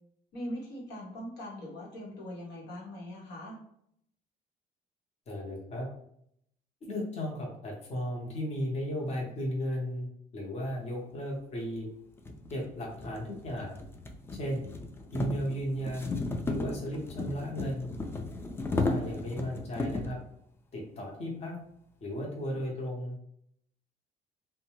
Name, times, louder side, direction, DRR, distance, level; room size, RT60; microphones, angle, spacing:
voice 1, 0.3-3.6 18.8-19.1, equal, 85° left, -4 dB, 1.1 m, -41 dB
voice 2, 5.3-5.9 6.9-10.1 10.3-11.9 12.5-13.8 14.4-14.6 15.1-17.9 18.7-20.2 20.7-21.5 22.0-23.1, equal, 40° left, -2 dB, 0.8 m, -35 dB
sound 1, 11.4-11.5 12.2-20.2, left 2 dB, 15° left, 0.3 m, -35 dB
2.6 x 2.2 x 3.0 m, 0.70 s
cardioid pair, 110°, 17 cm